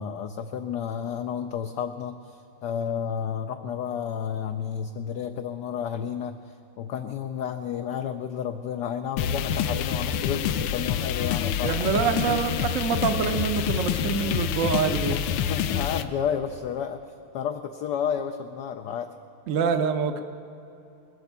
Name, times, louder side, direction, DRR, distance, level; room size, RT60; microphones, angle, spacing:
voice 1, 0.0-12.0 15.1-15.2 15.5-17.0 17.3-19.1, left 8 dB, 75° left, 6 dB, 1.0 m, -31 dB
sound 1, 9.2-16.0, left 9 dB, 90° left, 1.5 m, -27 dB
voice 2, 11.6-15.2 19.5-20.2, right 6 dB, 60° right, 7 dB, 0.8 m, -26 dB
20.0 x 7.9 x 7.3 m, 2.8 s
omnidirectional pair, 2.3 m